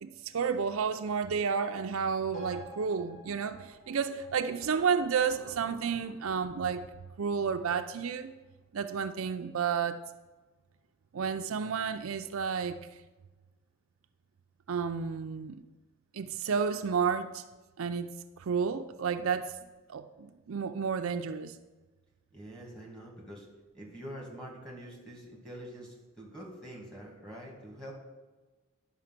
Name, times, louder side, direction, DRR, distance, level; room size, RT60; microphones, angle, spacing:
voice 1, 0.0-6.8 7.2-8.3 8.7-10.0 11.1-12.8 14.7-15.6 16.1-17.4 17.8-18.1 18.4-19.5 19.9-21.6, right 6 dB, 75° right, 0.5 m, -31 dB
sound 1, 2.3-9.3 9.6-9.7, left 1 dB, 40° left, 2.9 m, -54 dB
voice 2, 22.3-23.5 23.7-27.9, equal, 5° left, 2.1 m, -45 dB
10.5 x 5.8 x 5.9 m
head